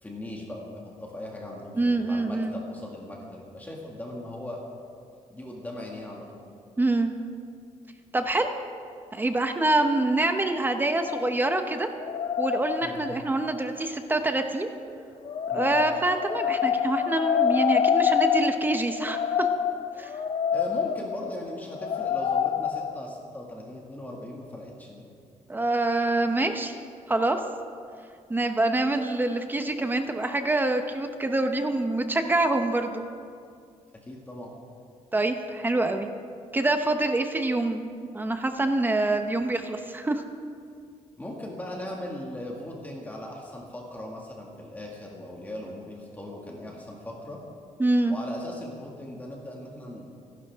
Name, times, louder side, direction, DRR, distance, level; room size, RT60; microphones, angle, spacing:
voice 1, 0.0-4.6 5.3-6.4 12.8-13.2 15.5-15.8 20.5-25.1 34.0-34.5 41.2-47.4 48.1-50.1, left 1 dB, 15° left, -2 dB, 2.0 m, -39 dB
voice 2, 1.8-2.6 6.8-7.1 8.1-8.5 9.1-11.9 12.4-14.7 15.5-19.5 20.0-20.1 25.5-26.7 27.1-27.4 28.3-33.0 35.1-36.1 36.5-37.8 38.1-40.2 47.8-48.2, right 2 dB, 15° right, 6 dB, 0.8 m, -25 dB
sound 1, 11.1-13.4 15.2-23.0, left 7 dB, 50° left, 0.6 m, -27 dB
26.0 x 12.0 x 3.6 m, 2.3 s
cardioid pair, 140°, 13 cm